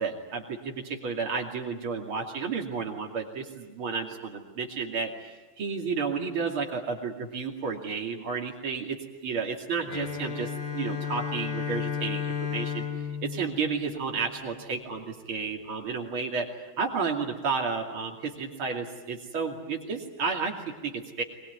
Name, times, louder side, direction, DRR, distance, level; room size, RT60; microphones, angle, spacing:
voice 1, 0.0-9.0 9.2-21.2, right 5 dB, 75° right, 1 dB, 3.5 m, -32 dB
Bowed string instrument, 9.9-14.6, left 7 dB, 60° left, 3.6 m, -33 dB
22.5 x 21.5 x 9.5 m, 1.3 s
omnidirectional pair, 2.3 m